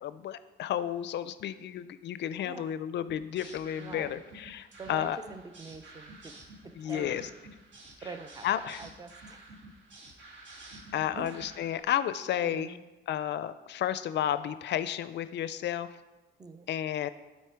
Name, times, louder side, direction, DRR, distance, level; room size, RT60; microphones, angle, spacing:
voice 1, 0.0-5.2 6.8-7.2 8.4-8.8 10.9-12.7 13.1-15.9 16.7-17.1, left 10 dB, 65° left, 14 dB, 0.4 m, -32 dB
voice 2, 2.4-2.8 3.8-4.2 4.8-6.3 6.6-7.4 8.0-9.5 11.2-11.3 12.4-12.8 16.4-16.7, right 4 dB, 20° right, 9 dB, 0.5 m, -45 dB
sound 1, 3.1-11.8, right 2 dB, 70° right, 1.6 m, -50 dB
8.2 x 4.2 x 4.4 m, 1.1 s
cardioid pair, 90°, 20 cm